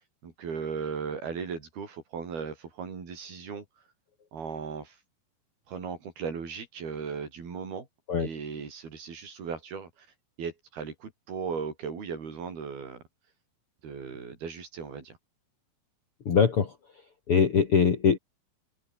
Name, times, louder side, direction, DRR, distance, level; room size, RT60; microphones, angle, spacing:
voice 1, 0.2-3.7 4.3-5.0 5.7-7.9 8.2-10.1 10.4-13.0 13.8-15.2, right 6 dB, 85° right, 6.9 m, -37 dB
voice 2, 16.3-16.7 17.3-18.2, left 6 dB, 40° left, 2.8 m, -22 dB
open air
omnidirectional pair, 4.3 m